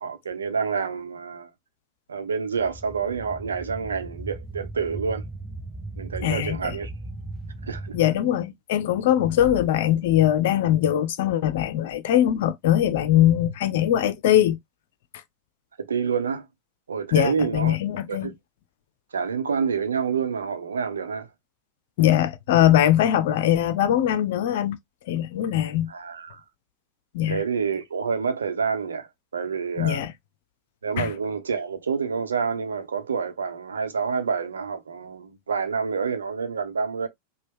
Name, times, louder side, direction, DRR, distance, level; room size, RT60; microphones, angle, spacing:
voice 1, 0.0-1.5 2.1-5.2 6.0-6.9 7.6-8.0 15.8-16.5 16.9-17.8 18.1-18.3 19.1-21.3 25.9-26.4 27.3-29.1 29.3-30.0 30.8-37.1, right 6 dB, 70° right, 0.9 m, -28 dB
sound 1, 2.6-8.0, right 2 dB, 10° right, 1.1 m, -37 dB
voice 2, 6.2-6.8 7.9-14.6 17.1-18.3 22.0-24.8 25.1-25.9 27.1-27.4 29.8-30.1 31.0-31.1, left 11 dB, 55° left, 0.7 m, -21 dB
5.2 x 2.3 x 3.5 m
figure-of-eight pair, 90°, 0 cm